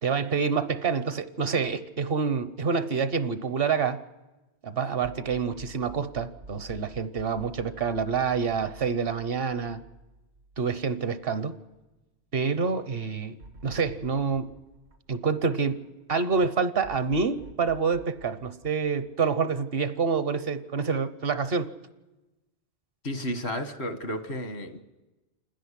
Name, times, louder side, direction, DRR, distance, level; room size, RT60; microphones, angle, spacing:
voice 1, 0.0-4.0 4.6-9.8 10.6-11.6 12.3-13.4 13.6-14.5 15.1-15.8 16.1-21.7, right 5 dB, 65° right, 12 dB, 1.1 m, -27 dB
sound 1, 5.0-11.3 11.7-11.8 13.4-15.9 16.8-19.6, right 2 dB, 80° right, 1.6 m, -49 dB
voice 2, 23.0-24.8, equal, 80° left, 8 dB, 1.7 m, -32 dB
28.0 x 10.5 x 10.0 m, 1.1 s
omnidirectional pair, 1.1 m